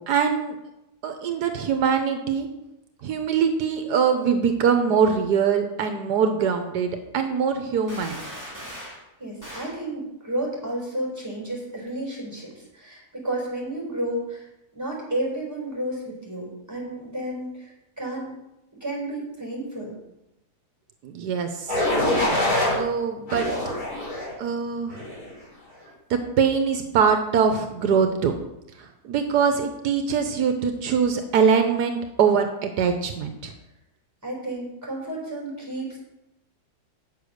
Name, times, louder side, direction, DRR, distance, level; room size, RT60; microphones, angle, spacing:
voice 1, 0.1-0.5 1.0-2.5 3.0-8.2 21.0-21.8 22.7-23.5 24.4-25.0 26.1-28.4 28.8-33.5, right 6 dB, 80° right, 6 dB, 1.4 m, -23 dB
sound 1, 7.9-9.0 9.4-9.8, equal, 10° left, 3.3 m, -39 dB
voice 2, 9.2-14.5 14.7-17.7 18.0-18.3 18.8-19.9 34.2-36.0, right 1 dB, 10° right, -4 dB, 4.3 m, -31 dB
sound 2, 21.7-22.8 23.3-24.3 24.9-25.3, left 1 dB, 65° left, 4.4 m, -24 dB
8.9 x 6.9 x 6.3 m, 0.89 s
omnidirectional pair, 1.7 m